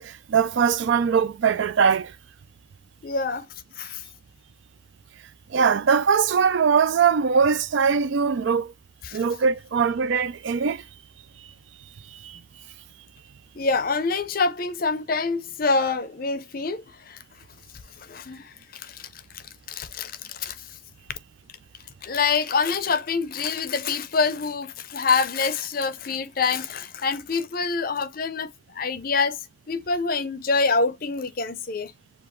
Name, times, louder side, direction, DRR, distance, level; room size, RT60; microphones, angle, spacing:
voice 1, 0.0-2.1 5.5-8.7 9.1-10.8 12.1-12.4, right 6 dB, 65° right, 0.4 m, -21 dB
voice 2, 3.0-3.5 3.8-4.0 9.0-9.2 13.6-17.2 18.0-19.1 19.3-20.8 22.0-31.9, left 4 dB, 45° left, 0.5 m, -26 dB
7.0 x 2.4 x 3.0 m
head